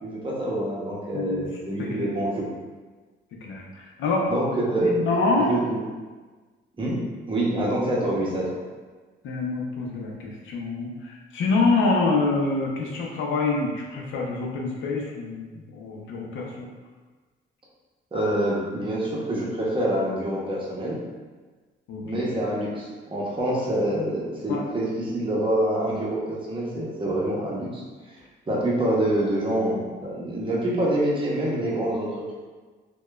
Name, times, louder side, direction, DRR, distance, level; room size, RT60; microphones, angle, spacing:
voice 1, 0.0-2.5 4.3-5.8 6.8-7.0 7.3-8.5 18.1-21.0 22.0-27.8 28.5-32.1, right 1 dB, 25° right, -6 dB, 0.8 m, -26 dB
voice 2, 1.1-1.5 2.0-2.1 3.4-4.3 4.8-5.5 7.7-7.8 9.2-16.7 21.9-22.3 24.5-24.6, left 3 dB, 75° left, -2 dB, 0.5 m, -26 dB
2.8 x 2.2 x 2.3 m, 1.4 s
cardioid pair, 90°, 20 cm